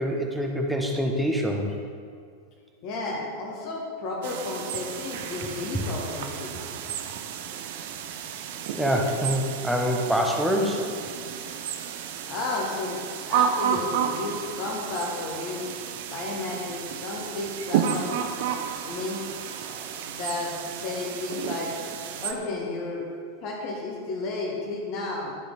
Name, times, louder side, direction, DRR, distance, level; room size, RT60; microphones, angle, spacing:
voice 1, 0.0-1.7 5.7-5.8 8.7-10.9 19.7-20.0, equal, ahead, 1 dB, 1.0 m, -25 dB
voice 2, 2.8-6.5 12.3-13.0 13.3-15.7 16.1-18.2 18.8-19.3 20.1-21.7 22.2-23.1 23.4-25.3, left 3 dB, 40° left, -1 dB, 1.5 m, -32 dB
sound 1, 4.2-22.3, right 8 dB, 50° right, 0.6 m, -32 dB
11.5 x 5.0 x 3.9 m, 2.2 s
figure-of-eight pair, 90°, 0 cm